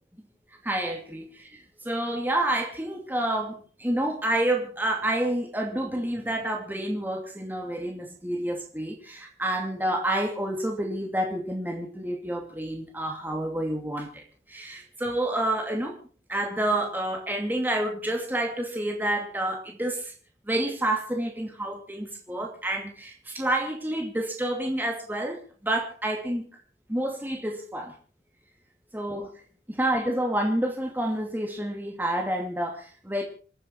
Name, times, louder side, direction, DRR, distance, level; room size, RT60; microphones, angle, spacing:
voice 1, 0.6-16.0 16.3-20.1 20.5-26.5 26.9-27.9 28.9-29.3 29.7-33.2, right 1 dB, 10° right, 1 dB, 2.5 m, -29 dB
27.5 x 9.8 x 4.5 m, 0.40 s
head